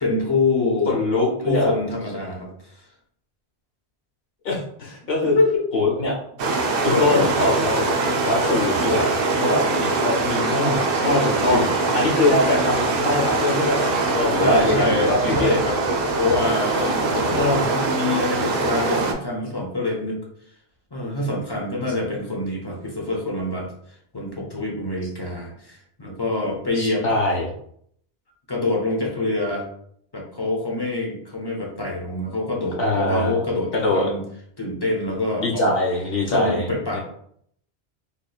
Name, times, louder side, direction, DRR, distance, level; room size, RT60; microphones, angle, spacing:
voice 1, 0.0-1.0 1.4-2.8 5.2-5.6 6.9-7.3 9.7-9.9 11.4-11.6 14.3-15.8 16.1-20.2 20.9-23.7 24.1-27.0 28.5-29.6 30.1-34.2 34.6-35.8 36.3-37.0, left 2 dB, 25° left, -1 dB, 0.6 m, -25 dB
voice 2, 0.9-1.7 4.4-5.3 5.7-6.1 6.8-7.9 8.2-9.1 9.4-11.7 11.9-15.5 16.8-16.9 17.2-17.7 26.7-27.5 32.8-33.4 33.7-34.1 35.4-36.7 36.9-37.0, left 2 dB, 60° left, -3 dB, 1.2 m, -22 dB
sound 1, 6.4-19.1, right 3 dB, 65° right, 0.7 m, -23 dB
3.6 x 2.8 x 2.3 m, 0.67 s
omnidirectional pair, 1.1 m